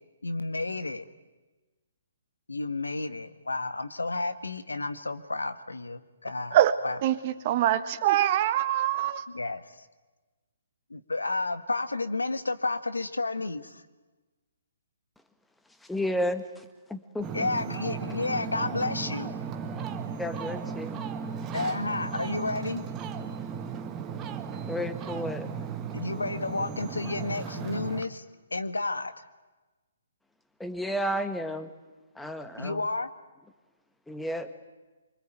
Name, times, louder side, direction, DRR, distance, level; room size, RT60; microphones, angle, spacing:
voice 1, 0.2-1.1 2.5-6.6 6.8-7.0 9.3-9.8 10.9-13.8 17.3-19.4 21.5-22.8 25.9-28.2 28.5-29.3 32.6-33.1, left 3 dB, 80° left, 10 dB, 1.6 m, -31 dB
voice 2, 7.0-9.2, right 12 dB, 40° right, 11 dB, 1.5 m, -24 dB
voice 3, 15.9-16.6 16.9-17.5 20.2-21.0 24.7-25.5 30.6-31.7 32.2-32.8 34.1-34.5, equal, 5° left, 8 dB, 1.7 m, -32 dB
Ocean, 17.2-28.0, right 6 dB, 20° right, 1.8 m, -36 dB
25.5 x 24.0 x 9.2 m, 1.2 s
figure-of-eight pair, 130°, 0 cm